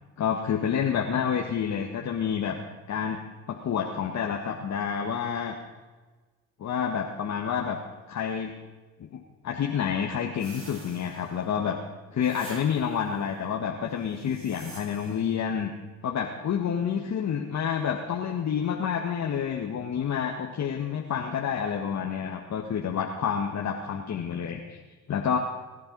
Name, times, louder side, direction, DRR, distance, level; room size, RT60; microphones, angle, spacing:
voice 1, 0.2-2.6 2.9-3.2 3.5-5.5 6.6-7.8 8.1-8.5 9.0-11.8 12.1-15.7 16.0-24.8 25.1-25.4, left 7 dB, 50° left, 1 dB, 1.9 m, -29 dB
sound 1, 10.4-11.6 12.2-13.1 14.1-15.3, right 2 dB, 40° right, 5.9 m, -48 dB
21.5 x 11.0 x 5.5 m, 1.3 s
supercardioid pair, 75°, 35 cm